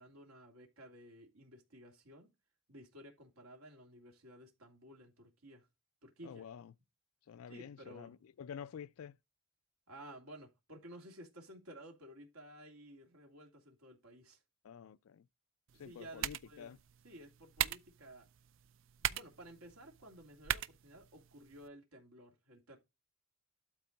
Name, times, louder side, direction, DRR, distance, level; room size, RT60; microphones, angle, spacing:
voice 1, 0.0-2.3 2.7-5.7 6.0-6.4 7.5-8.2 9.9-14.4 15.7-16.7 17.0-18.3 19.0-22.8, right 1 dB, 80° right, 2.8 m, -54 dB
voice 2, 6.2-6.7 7.3-9.2 14.6-15.3 15.7-16.8, left 7 dB, 75° left, 0.4 m, -49 dB
sound 1, 15.7-21.7, right 10 dB, 60° right, 0.5 m, -42 dB
12.0 x 4.4 x 3.9 m
head